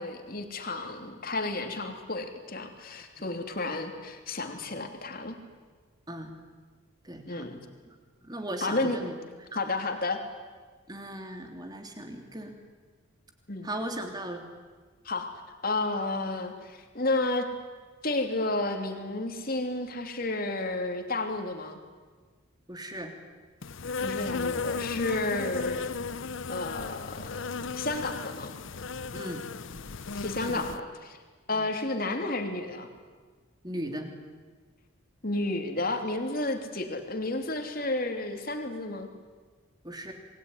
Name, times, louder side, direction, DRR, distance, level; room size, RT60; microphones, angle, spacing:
voice 1, 0.0-5.4 7.3-7.6 8.6-9.0 9.5-10.2 13.5-13.7 15.0-15.3 15.6-17.5 18.0-21.8 24.0-25.9 26.5-27.4 27.7-28.5 30.1-31.2 31.5-32.9 35.2-39.1, left 2 dB, 45° left, 5 dB, 3.0 m, -31 dB
voice 2, 7.0-7.5 7.9-8.0 8.2-9.1 9.5-9.6 10.9-12.6 13.6-14.4 22.7-23.1 29.1-29.4 30.4-30.7 31.5-31.7 33.6-34.1 39.8-40.1, right 1 dB, 20° right, 4 dB, 3.3 m, -37 dB
Insect, 23.6-30.8, left 4 dB, 65° left, 0.8 m, -35 dB
27.5 x 21.5 x 9.8 m, 1.4 s
head